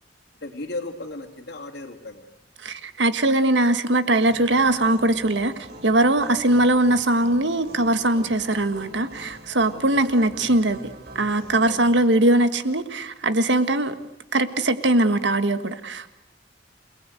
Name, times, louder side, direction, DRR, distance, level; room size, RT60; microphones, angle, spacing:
voice 1, 0.4-2.3 6.2-6.4 9.7-10.3 11.6-11.8, left 2 dB, 65° left, 2.6 m, -36 dB
voice 2, 2.6-5.5 5.8-10.8 11.1-13.9 14.3-16.1, right 1 dB, 80° right, 1.7 m, -21 dB
sound 1, 4.2-12.0, equal, 60° right, 3.2 m, -44 dB
29.0 x 19.0 x 7.9 m
head